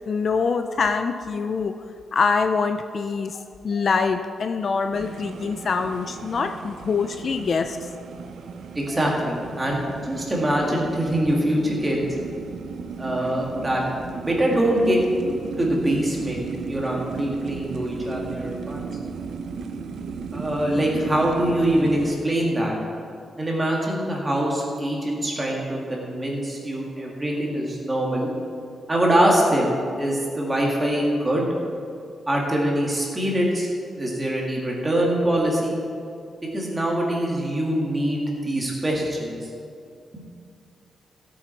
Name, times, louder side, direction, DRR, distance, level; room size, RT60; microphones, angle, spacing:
voice 1, 0.1-1.8 2.1-7.9, left 5 dB, 40° left, 8 dB, 0.4 m, -24 dB
sound 1, 4.9-22.1, right 5 dB, 70° right, 0.8 m, -35 dB
voice 2, 8.7-12.0 13.0-13.8 14.2-15.0 15.6-18.9 20.3-22.8 23.4-28.3 28.9-31.5 32.3-33.7 34.0-35.8 36.5-39.5, right 1 dB, 15° right, -2 dB, 2.2 m, -24 dB
17.0 x 8.5 x 4.6 m, 2.4 s
wide cardioid pair, 175°, 0 cm